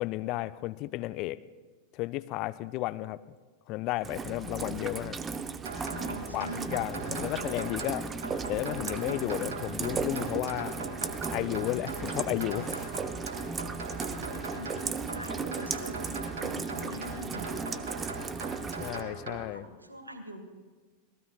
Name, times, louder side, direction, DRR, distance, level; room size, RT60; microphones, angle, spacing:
voice 1, 0.0-1.4 1.9-3.2 3.7-5.2 6.3-8.1 8.5-10.8 11.3-12.9 18.8-19.6, left 18 dB, 40° left, 15 dB, 0.5 m, -33 dB
Rain, 4.0-19.0, right 5 dB, 20° right, 0.7 m, -36 dB
sound 1, 5.6-19.4, right 3 dB, 60° right, 3.4 m, -40 dB
voice 2, 5.7-6.9 14.3-17.6 19.5-20.5, right 1 dB, 85° right, 7 dB, 1.7 m, -44 dB
26.5 x 18.5 x 2.4 m, 1.4 s
figure-of-eight pair, 90°, 0 cm